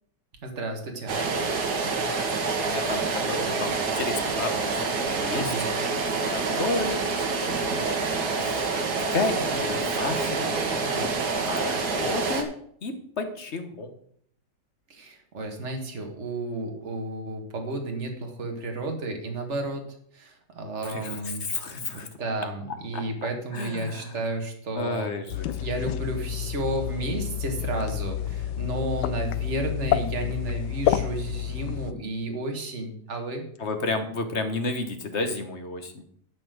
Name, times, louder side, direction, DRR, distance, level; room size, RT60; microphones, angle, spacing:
voice 1, 0.4-1.1 5.3-5.6 14.9-19.9 20.1-21.4 21.7-25.1 25.6-33.4, right 2 dB, 45° right, 3 dB, 2.0 m, -32 dB
sound 1, 1.1-12.4, right 4 dB, 70° right, 1.9 m, -27 dB
voice 2, 2.2-4.7 5.0-5.5 6.3-8.0 8.4-8.7 9.1-11.1 11.5-12.5 12.8-13.9 20.8-22.1 22.9-23.0 23.5-24.2 24.7-25.5 33.6-36.0, left 3 dB, 45° left, 7 dB, 1.4 m, -32 dB
sound 2, 25.3-31.9, left 11 dB, 85° left, 1.2 m, -29 dB
11.5 x 4.4 x 7.8 m, 0.65 s
omnidirectional pair, 1.8 m